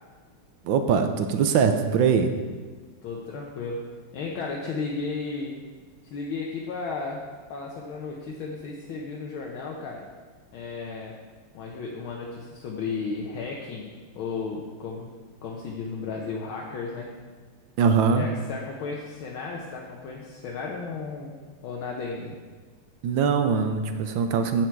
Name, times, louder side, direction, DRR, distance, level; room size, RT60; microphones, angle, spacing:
voice 1, 0.6-2.3 17.8-18.3 23.0-24.7, right 6 dB, 70° right, 7 dB, 1.3 m, -22 dB
voice 2, 3.0-3.8 4.1-5.6 6.0-10.0 10.5-11.2 11.5-15.1 15.4-17.1 18.2-21.3 21.6-22.3, left 4 dB, 70° left, -1 dB, 1.7 m, -34 dB
9.2 x 7.5 x 4.6 m, 1.4 s
omnidirectional pair, 2.4 m